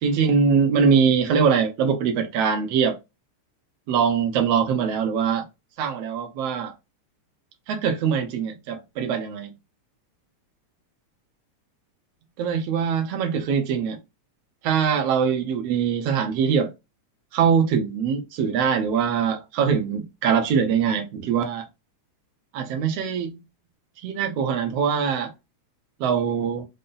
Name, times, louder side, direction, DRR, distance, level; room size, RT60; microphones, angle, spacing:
voice 1, 0.0-3.0 3.9-5.4 5.8-6.7 7.7-9.5 12.4-14.0 14.6-16.7 17.3-21.7 22.5-23.4 24.0-25.3 26.0-26.7, right 6 dB, 70° right, 1.7 m, -22 dB
5.4 x 2.2 x 3.8 m
omnidirectional pair, 3.3 m